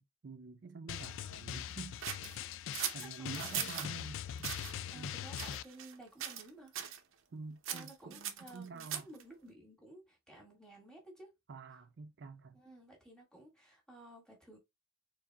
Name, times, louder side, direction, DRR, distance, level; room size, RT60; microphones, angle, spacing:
voice 1, 0.0-2.0 2.9-4.5 4.9-5.2 7.3-9.1 11.5-12.6, right 4 dB, 55° right, 0.4 m, -48 dB
Drum, 0.9-5.6, left 10 dB, 80° left, 0.3 m, -42 dB
sound 1, 2.0-3.9 4.4-4.7 5.3-5.9 6.2-6.5 6.7-7.0 7.6-9.2, right 9 dB, 90° right, 0.8 m, -40 dB
voice 2, 3.0-4.0 4.9-6.7 7.7-11.3 12.5-14.6, right 1 dB, 5° left, 2.1 m, -54 dB
4.6 x 4.0 x 2.3 m
head